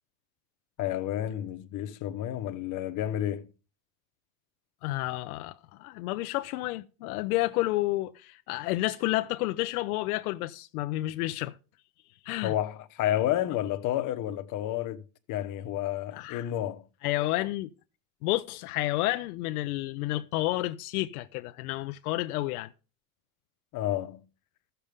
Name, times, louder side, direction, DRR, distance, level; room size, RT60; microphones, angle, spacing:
voice 1, 0.8-3.5 12.4-16.8 23.7-24.2, left 12 dB, 45° left, 1.0 m, -30 dB
voice 2, 4.8-11.5 12.2-12.5 16.1-16.5 17.0-17.7 18.2-22.7, left 17 dB, 80° left, 0.6 m, -30 dB
14.5 x 6.9 x 3.5 m
supercardioid pair, 120°, 43 cm